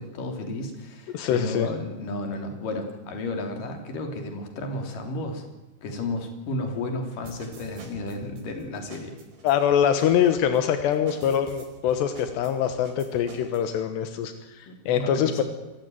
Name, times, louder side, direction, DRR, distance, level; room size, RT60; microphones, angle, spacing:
voice 1, 0.0-5.4 5.8-9.1 14.7-15.4, left 2 dB, 55° left, 5 dB, 4.6 m, -33 dB
voice 2, 1.1-1.7 9.4-15.4, left 9 dB, 85° left, 8 dB, 3.4 m, -24 dB
sound 1, 7.1-13.6, right 3 dB, 75° right, 7.0 m, -47 dB
26.0 x 14.5 x 9.3 m, 1.1 s
omnidirectional pair, 4.9 m